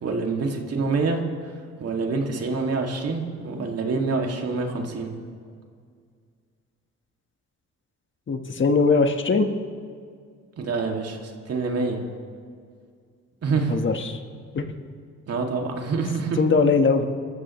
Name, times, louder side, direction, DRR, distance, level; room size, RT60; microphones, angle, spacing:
voice 1, 0.0-1.2 1.8-5.1 10.6-12.0 13.4-13.9 15.3-16.4, right 4 dB, 55° right, 1 dB, 2.5 m, -26 dB
voice 2, 8.3-9.5 13.7-14.2 14.5-14.6 16.4-17.1, left 4 dB, 40° left, 6 dB, 1.5 m, -20 dB
29.5 x 14.5 x 3.2 m, 2.1 s
cardioid pair, 90°, 30 cm